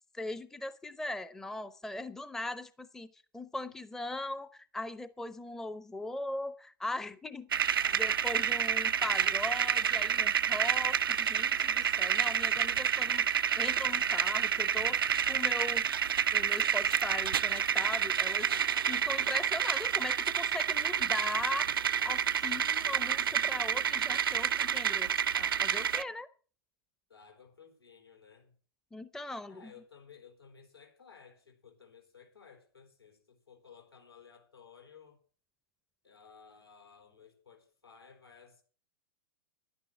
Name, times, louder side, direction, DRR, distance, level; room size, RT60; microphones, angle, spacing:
voice 1, 0.1-7.5 8.0-13.3 13.6-15.0 15.3-15.9 16.3-18.5 18.9-26.3 28.9-29.7, left 2 dB, 5° left, 0.6 m, -39 dB
voice 2, 7.5-9.5 15.1-15.3 27.1-28.5 29.5-35.2 36.0-38.6, left 6 dB, 80° left, 4.1 m, -57 dB
sound 1, 7.5-26.0, right 8 dB, 65° right, 0.5 m, -29 dB
11.5 x 9.7 x 7.0 m
figure-of-eight pair, 100°, 13 cm